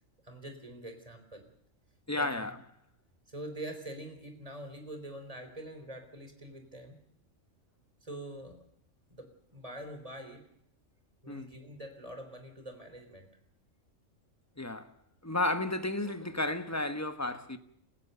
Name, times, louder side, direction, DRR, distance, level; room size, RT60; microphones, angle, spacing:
voice 1, 0.2-1.4 2.1-2.5 3.3-7.0 8.0-8.6 9.1-10.4 11.2-13.3, right 1 dB, 25° right, 4.0 m, -45 dB
voice 2, 2.1-2.6 11.3-11.5 14.6-14.9 15.2-17.6, left 2 dB, 15° left, 1.1 m, -32 dB
29.0 x 15.5 x 6.8 m
omnidirectional pair, 1.4 m